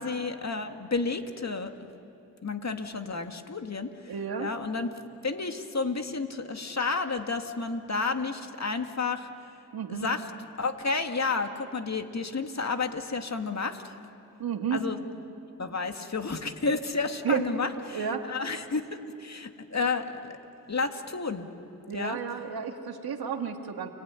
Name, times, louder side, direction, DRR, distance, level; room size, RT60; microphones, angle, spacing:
voice 1, 0.0-1.7 2.4-4.1 4.4-9.3 9.9-10.3 10.6-13.9 14.7-15.0 15.6-20.4 20.7-21.5 21.9-22.2, left 4 dB, 45° left, 5 dB, 2.3 m, -31 dB
voice 2, 4.1-4.5 9.7-10.1 14.4-14.8 17.2-17.5 17.9-18.3 21.9-23.9, right 7 dB, 80° right, 4 dB, 2.2 m, -31 dB
30.0 x 18.5 x 9.8 m, 2.8 s
cardioid pair, 45°, 36 cm